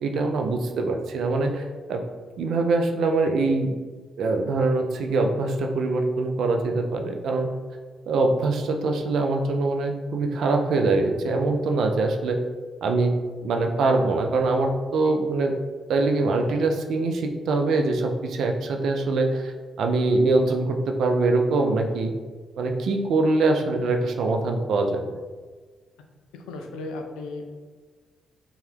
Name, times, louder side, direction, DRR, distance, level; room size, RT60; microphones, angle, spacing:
voice 1, 0.0-2.0 2.4-3.7 4.2-7.5 8.1-12.4 12.8-13.1 13.4-15.5 15.9-22.1 22.6-25.2, right 3 dB, 70° right, 4 dB, 0.3 m, -23 dB
voice 2, 26.3-27.5, left 2 dB, 85° left, 4 dB, 0.3 m, -36 dB
2.8 x 2.3 x 3.2 m, 1.5 s
supercardioid pair, 50°, 0 cm